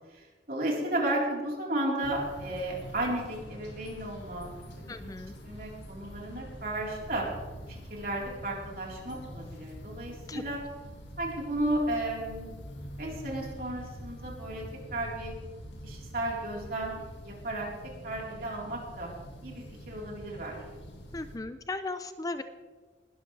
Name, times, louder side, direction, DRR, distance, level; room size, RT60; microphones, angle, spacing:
voice 1, 0.1-4.5 5.4-7.3 7.7-10.6 11.2-12.5 13.0-15.4 15.8-17.7 18.0-19.1 19.4-20.8, right 1 dB, 55° right, -3 dB, 4.0 m, -34 dB
sound 1, 2.0-21.4, equal, 80° left, 2.1 m, -45 dB
voice 2, 4.9-5.3 10.3-10.4 21.1-22.4, left 2 dB, 20° left, 10 dB, 0.4 m, -36 dB
20.5 x 12.5 x 3.3 m, 1.4 s
head